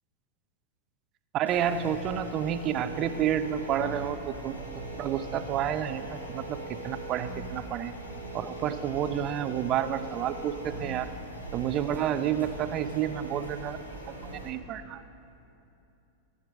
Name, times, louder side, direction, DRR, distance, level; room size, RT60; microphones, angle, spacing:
voice 1, 1.3-4.6 5.0-6.6 6.8-7.9 8.3-11.1 11.5-13.8 14.1-15.0, right 10 dB, 35° right, 12 dB, 0.6 m, -30 dB
sound 1, 1.5-14.5, right 2 dB, 85° left, 1.7 m, -40 dB
14.5 x 8.8 x 6.4 m, 2.8 s
figure-of-eight pair, 90°, 0 cm